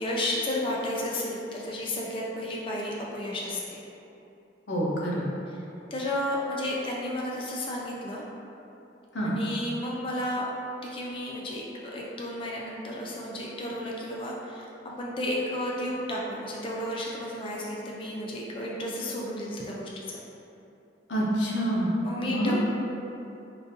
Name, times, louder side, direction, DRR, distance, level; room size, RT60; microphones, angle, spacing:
voice 1, 0.0-3.9 5.9-8.2 9.2-10.5 10.8-20.2 22.0-22.6, left 1 dB, 30° left, -4 dB, 0.3 m, -32 dB
voice 2, 4.7-5.3 9.1-9.4 21.1-22.0 22.2-22.6, equal, 80° left, -5 dB, 0.6 m, -27 dB
3.8 x 2.5 x 2.6 m, 2.9 s
head